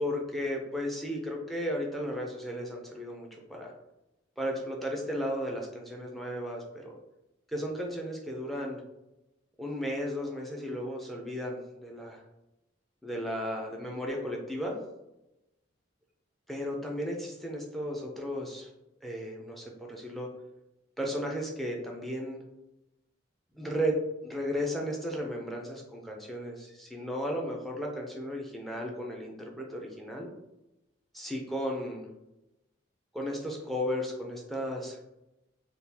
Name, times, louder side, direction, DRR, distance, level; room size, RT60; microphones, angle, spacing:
voice 1, 0.0-3.7 4.4-6.9 7.5-8.8 9.6-12.2 13.0-14.7 16.5-18.7 19.0-20.3 21.0-22.4 23.6-24.0 24.2-30.3 31.1-32.1 33.1-35.0, equal, ahead, 0 dB, 0.5 m, -34 dB
3.6 x 2.4 x 2.7 m, 0.92 s
head